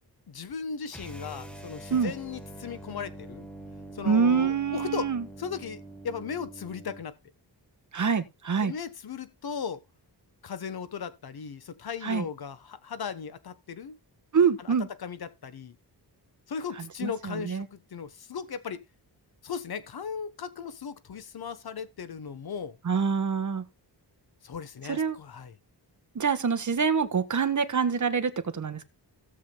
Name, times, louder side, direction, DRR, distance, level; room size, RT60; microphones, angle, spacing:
voice 1, 0.3-3.5 3.9-5.1 5.4-7.2 8.6-9.8 10.4-14.0 14.6-15.8 16.5-18.8 19.4-22.8 24.4-25.5, left 6 dB, 60° left, 1.2 m, -37 dB
sound 1, 0.9-7.1, right 1 dB, 5° left, 1.3 m, -45 dB
voice 2, 4.0-5.2 7.9-8.7 12.0-12.2 14.3-14.9 17.0-17.6 22.8-23.6 24.9-25.2 26.1-28.8, right 6 dB, 45° right, 1.3 m, -25 dB
17.0 x 7.3 x 2.3 m
wide cardioid pair, 115°, 42 cm